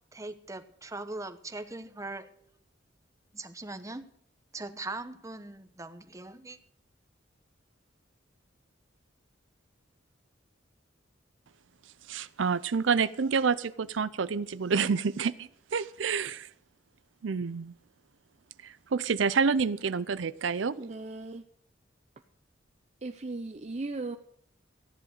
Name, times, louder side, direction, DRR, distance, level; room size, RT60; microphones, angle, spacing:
voice 1, 0.1-2.3 3.3-4.0 4.5-6.6, right 2 dB, 15° right, 10 dB, 1.0 m, -40 dB
voice 2, 12.1-16.5 17.2-17.7 18.6-20.8, right 5 dB, 75° right, 15 dB, 0.5 m, -28 dB
voice 3, 20.8-21.5 23.0-24.2, right 3 dB, 35° right, 6 dB, 0.6 m, -37 dB
14.5 x 10.5 x 6.5 m, 0.66 s
head